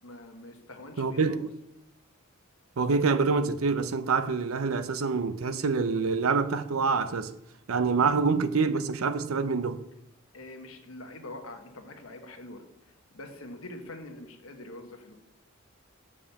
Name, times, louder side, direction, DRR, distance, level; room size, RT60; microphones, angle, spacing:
voice 1, 0.0-1.4 10.3-15.2, left 2 dB, 80° left, 1.3 m, -44 dB
voice 2, 1.0-1.5 2.8-7.3 7.7-9.8, right 4 dB, 85° right, 0.6 m, -26 dB
7.1 x 5.0 x 7.0 m
head